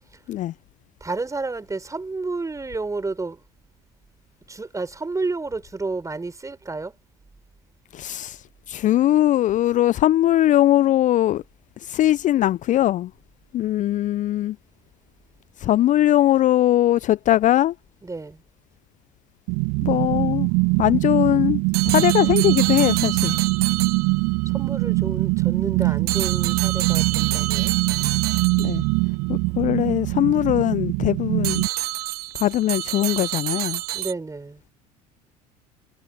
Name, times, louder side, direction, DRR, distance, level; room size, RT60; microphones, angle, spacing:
voice 1, 1.0-3.4 4.5-6.9 18.0-18.4 24.4-27.7 33.9-34.6, right 3 dB, 15° right, 5.0 m, -31 dB
voice 2, 7.9-11.4 11.8-13.1 13.5-14.6 15.6-17.7 19.8-20.5 20.8-23.4 28.6-28.8 29.3-31.6 32.3-33.8, left 13 dB, 40° left, 0.6 m, -20 dB
sound 1, 19.5-31.7, right 32 dB, 55° right, 0.4 m, -23 dB
sound 2, 21.7-24.5 26.1-29.0 31.4-34.1, right 16 dB, 70° right, 2.4 m, -28 dB
figure-of-eight pair, 65°, 20 cm